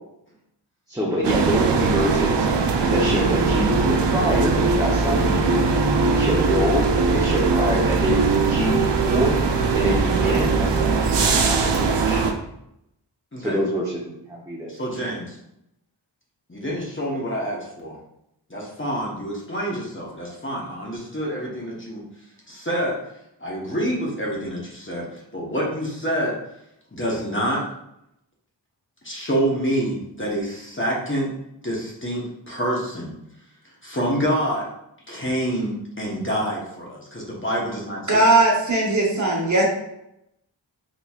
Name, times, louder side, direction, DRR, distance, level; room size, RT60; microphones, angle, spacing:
voice 1, 0.9-2.5 2.9-5.4 6.0-6.9 7.1-9.4 9.7-12.3 13.4-14.7, equal, 10° right, -5 dB, 0.7 m, -26 dB
sound 1, 1.2-12.3, right 4 dB, 70° right, 0.5 m, -20 dB
voice 2, 14.7-15.4 16.5-18.0 18.5-22.0 22.5-23.0 23.4-25.1 25.3-26.4 26.9-27.6 29.0-31.3 31.6-33.1 33.8-34.7 35.1-38.2, equal, 25° left, -4 dB, 1.0 m, -27 dB
voice 3, 38.1-39.6, right 2 dB, 40° right, -2 dB, 1.0 m, -18 dB
4.2 x 3.0 x 2.3 m, 0.82 s
wide cardioid pair, 45°, 44 cm